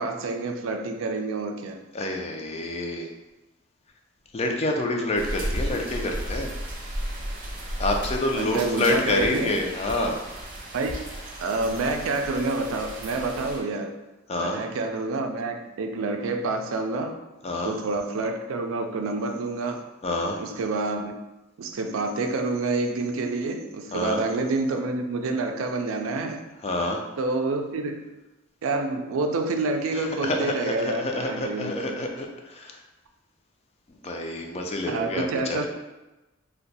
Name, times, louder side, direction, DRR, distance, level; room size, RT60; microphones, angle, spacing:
voice 1, 0.0-1.8 8.3-9.5 10.7-11.0 11.4-14.0 14.4-17.2 17.6-19.8 20.4-21.2 21.6-26.4 27.2-28.1 28.6-31.7 34.9-35.7, right 3 dB, 90° right, 4 dB, 0.4 m, -28 dB
voice 2, 1.9-3.1 4.3-6.5 7.8-10.2 14.3-14.6 17.4-17.7 20.0-20.4 23.9-24.2 26.6-27.0 29.9-32.8 34.0-35.7, left 2 dB, 30° left, 2 dB, 0.4 m, -27 dB
sound 1, 5.2-13.6, right 1 dB, 45° right, 0.7 m, -34 dB
2.6 x 2.2 x 4.0 m, 1.0 s
head